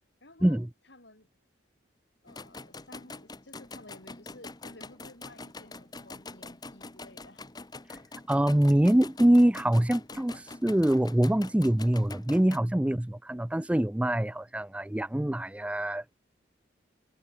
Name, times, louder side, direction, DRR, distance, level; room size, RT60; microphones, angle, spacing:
voice 1, 0.2-1.3 2.2-7.4, left 2 dB, 65° left, 6.5 m, -53 dB
sound 1, 2.3-12.6, left 3 dB, 20° left, 1.1 m, -45 dB
voice 2, 8.3-16.2, right 1 dB, 5° right, 0.3 m, -24 dB
head